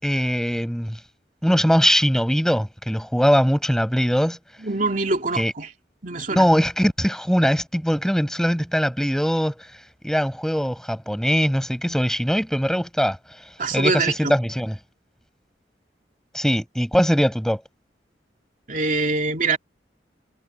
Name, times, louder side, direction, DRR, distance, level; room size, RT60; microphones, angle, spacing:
voice 1, 0.0-1.0 1.4-4.4 5.3-5.5 6.3-9.5 10.0-13.2 13.7-14.7 16.3-17.6, equal, 5° left, 6.5 m, -21 dB
voice 2, 4.6-5.7 6.0-6.5 13.6-14.3 18.7-19.6, right 3 dB, 50° right, 2.9 m, -24 dB
head